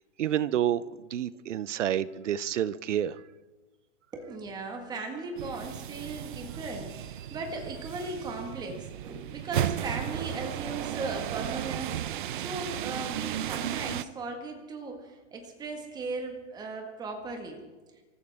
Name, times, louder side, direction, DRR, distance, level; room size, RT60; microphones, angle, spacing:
voice 1, 0.2-3.2, right 10 dB, 70° right, 18 dB, 0.8 m, -29 dB
voice 2, 4.1-12.0 12.3-17.6, right 3 dB, 10° right, 3 dB, 1.7 m, -37 dB
sound 1, 5.4-14.0, right 11 dB, 45° right, 0.5 m, -35 dB
26.0 x 14.0 x 3.6 m, 1.3 s
hypercardioid pair, 155°, 37 cm